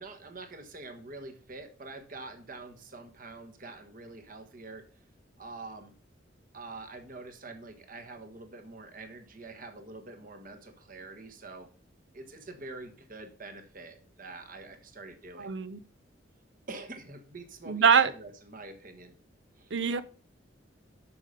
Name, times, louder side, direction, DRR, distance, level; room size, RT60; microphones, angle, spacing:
voice 1, 0.0-4.8 5.4-6.0 6.5-11.7 12.1-15.5 16.7-19.1 19.6-19.7, right 3 dB, 45° right, 7 dB, 1.4 m, -45 dB
voice 2, 15.4-15.8 17.7-18.1 19.7-20.0, right 6 dB, 70° right, 15 dB, 0.6 m, -23 dB
7.8 x 6.6 x 5.2 m, 0.39 s
head